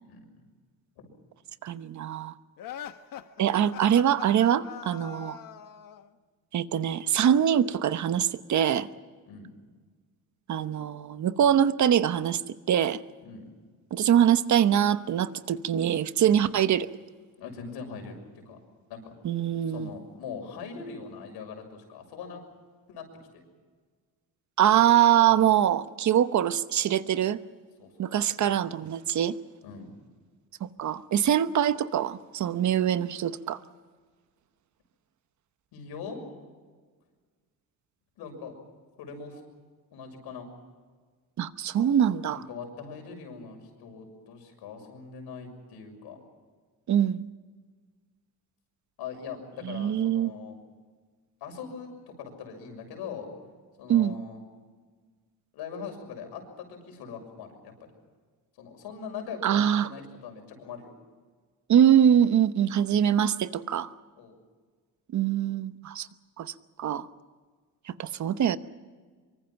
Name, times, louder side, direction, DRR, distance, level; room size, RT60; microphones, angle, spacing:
voice 1, 0.0-0.4 1.0-1.1 9.3-9.5 13.2-13.5 16.2-16.4 17.4-18.2 18.4-18.6 18.9-19.1 19.7-22.4 22.9-23.0 23.3-23.4 27.8-27.9 28.6-28.7 29.6-29.9 35.7-36.2 38.2-38.5 39.0-39.4 39.9-40.5 42.3-46.2 49.0-50.5 51.4-51.9 52.2-53.3 53.8-54.4 55.5-57.9 58.6-60.9 64.2-64.3, left 6 dB, 85° left, 4 dB, 6.6 m, -41 dB
voice 2, 1.6-2.3 3.4-5.4 6.5-8.9 10.5-12.4 12.7-13.0 13.9-16.9 19.2-19.9 24.6-27.4 28.0-29.4 30.8-33.6 41.4-42.4 46.9-47.3 49.6-50.3 53.9-54.2 59.4-59.9 61.7-63.9 65.1-66.1 66.4-66.5 66.8-67.1 68.0-68.6, right 10 dB, 50° right, 12 dB, 1.0 m, -23 dB
sound 1, 2.6-6.1, left 10 dB, 60° left, 1.2 m, -42 dB
25.0 x 24.0 x 5.9 m, 1.5 s
cardioid pair, 130°, 38 cm